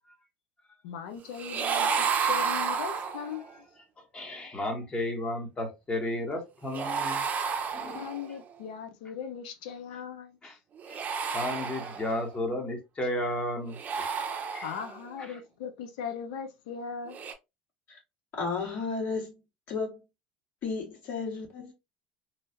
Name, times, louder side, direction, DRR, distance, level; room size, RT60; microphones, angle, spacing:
voice 1, 0.8-3.5 7.9-10.6 14.6-17.2, left 7 dB, 80° left, 0.6 m, -39 dB
sound 1, 1.3-3.5 6.7-8.4 10.8-12.3 13.7-15.1 17.1-17.3, right 6 dB, 40° right, 0.6 m, -31 dB
voice 2, 4.1-7.2 7.7-8.1 10.4-10.5 10.9-11.0 11.3-14.1 14.5-14.6 15.3-15.4, left 1 dB, 25° left, 1.2 m, -33 dB
voice 3, 18.4-19.3 19.7-20.0 20.6-21.7, left 4 dB, 55° left, 1.8 m, -33 dB
3.1 x 2.3 x 2.6 m
supercardioid pair, 90°, 4 cm